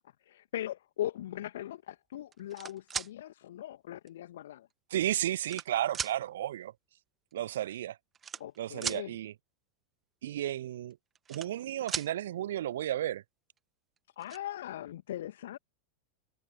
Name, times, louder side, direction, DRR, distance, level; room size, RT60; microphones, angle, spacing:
voice 1, 0.3-4.7 8.4-9.1 14.2-15.6, left 12 dB, 60° left, 2.3 m, -39 dB
sound 1, 2.3-3.1 4.1-4.2 5.0-5.7 5.9-6.1 7.3-7.4 7.6-7.8 8.1-9.0 10.9-11.6 11.9-12.1 13.6-13.7 14.0-14.4, right 7 dB, 20° right, 2.2 m, -37 dB
voice 2, 4.9-6.7 7.3-8.0 8.6-9.3 10.2-11.0 11.3-13.2, right 12 dB, 60° right, 0.4 m, -33 dB
figure-of-eight pair, 90°, 0 cm